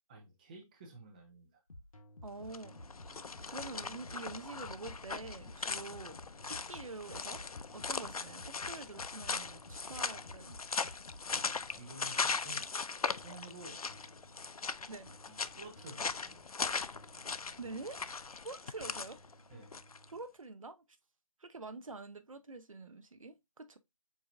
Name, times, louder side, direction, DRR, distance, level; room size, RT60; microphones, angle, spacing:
voice 1, 0.1-1.6 11.2-12.7 13.1-13.8 15.2-16.5 19.5-19.7, right 2 dB, 15° right, 0.7 m, -52 dB
sound 1, 1.7-20.2, left 1 dB, 70° left, 1.1 m, -55 dB
voice 2, 2.2-6.2 6.5-7.4 7.7-10.6 14.9-15.1 17.6-18.0 18.4-19.2 20.1-20.8 21.4-23.8, right 3 dB, 65° right, 0.8 m, -46 dB
sound 2, 2.4-20.1, left 4 dB, 90° left, 0.4 m, -39 dB
7.2 x 2.9 x 2.5 m
figure-of-eight pair, 160°, 18 cm